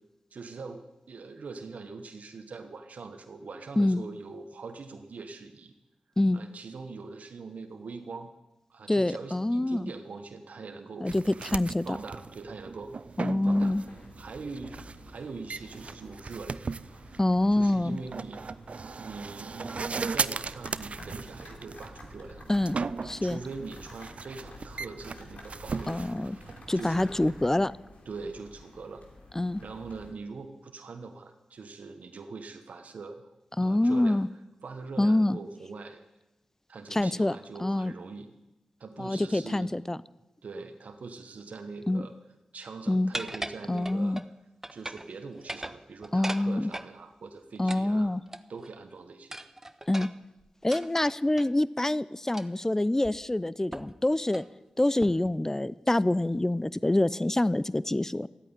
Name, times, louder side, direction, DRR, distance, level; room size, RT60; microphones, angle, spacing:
voice 1, 0.3-5.7 6.3-8.3 8.7-11.1 11.8-12.9 13.4-13.7 14.2-14.8 15.1-16.6 17.5-18.4 19.0-22.4 23.2-26.3 26.7-27.1 28.1-29.0 29.6-33.2 33.6-34.2 34.6-36.0 36.7-38.3 38.8-39.7 40.4-42.1 42.5-44.2 44.7-48.1 48.5-49.4, right 4 dB, 75° right, 6 dB, 1.1 m, -42 dB
voice 2, 8.9-9.9 11.0-12.0 13.2-13.8 17.2-18.0 22.5-22.8 23.0-23.4 25.9-26.4 26.7-27.7 29.4-29.6 33.6-34.3 35.0-35.4 36.9-37.4 37.6-37.9 39.0-40.0 41.9-42.0 42.9-43.1 43.7-44.2 46.1-46.7 47.6-48.2 49.9-50.1 50.6-54.4 54.8-58.3, left 1 dB, 20° left, 19 dB, 0.5 m, -26 dB
sound 1, 11.1-27.5, right 4 dB, 55° right, 0.4 m, -38 dB
sound 2, 13.4-30.1, left 2 dB, 70° left, 3.2 m, -50 dB
sound 3, 43.1-44.3 44.6-45.1 45.4-46.9 47.7-48.7 49.3-51.5 52.3-52.6 53.0-53.1 53.7-54.0 54.3-54.5 55.0-55.3, right 1 dB, 15° right, 0.8 m, -39 dB
13.0 x 8.8 x 9.7 m, 1.0 s
cardioid pair, 45°, 2 cm